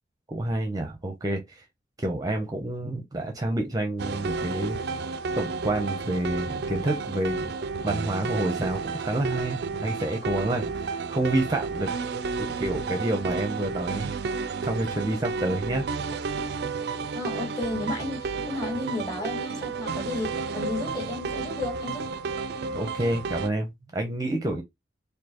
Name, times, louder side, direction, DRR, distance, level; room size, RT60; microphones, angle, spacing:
voice 1, 0.3-1.6 2.0-4.8 5.4-7.5 7.8-11.9 12.4-14.1 14.6-15.9 22.7-24.6, right 1 dB, 20° right, 0.6 m, -29 dB
sound 1, 4.0-23.5, right 4 dB, 60° right, 0.4 m, -31 dB
voice 2, 17.1-22.0, left 2 dB, 25° left, 1.8 m, -33 dB
4.2 x 2.7 x 2.9 m
head